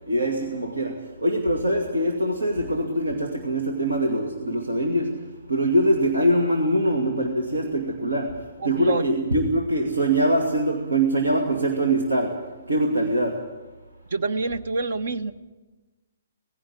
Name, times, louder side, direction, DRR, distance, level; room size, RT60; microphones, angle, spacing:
voice 1, 0.1-12.4 12.7-13.5, right 1 dB, 85° right, 2 dB, 2.5 m, -23 dB
voice 2, 8.6-9.0 14.1-15.3, right 3 dB, 60° right, 12 dB, 1.2 m, -27 dB
19.0 x 16.0 x 9.7 m, 1.2 s
figure-of-eight pair, 135°, 0 cm